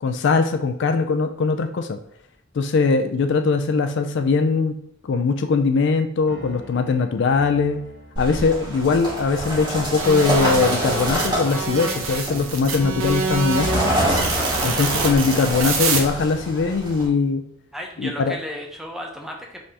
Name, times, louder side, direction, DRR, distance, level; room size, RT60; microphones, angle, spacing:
voice 1, 0.0-2.0 2.5-4.8 5.0-7.8 8.2-14.0 14.6-17.4 18.0-18.3, left 4 dB, 55° left, 8 dB, 0.4 m, -21 dB
sound 1, 6.3-14.3, right 1 dB, 60° right, 1.6 m, -42 dB
sound 2, 8.2-17.1, equal, 20° right, 1.7 m, -26 dB
sound 3, 10.0-16.0, right 4 dB, 90° right, 0.8 m, -26 dB
voice 2, 17.7-19.6, equal, ahead, 0 dB, 0.6 m, -34 dB
5.4 x 3.3 x 2.8 m, 0.68 s
head